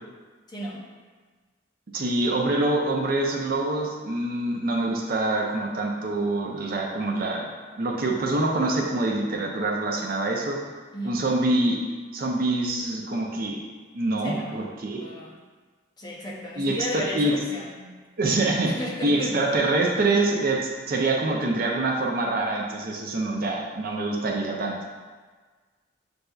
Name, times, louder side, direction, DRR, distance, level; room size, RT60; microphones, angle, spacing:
voice 1, 0.5-0.9 10.9-11.3 14.2-14.5 15.0-15.4 16.0-18.0 18.6-19.5, equal, 25° left, -3 dB, 0.6 m, -34 dB
voice 2, 1.9-7.5 7.8-10.6 11.0-11.8 12.1-13.6 13.9-15.0 16.6-17.4 18.2-24.7, right 2 dB, 50° right, 0 dB, 0.5 m, -25 dB
7.6 x 2.7 x 2.3 m, 1.4 s
head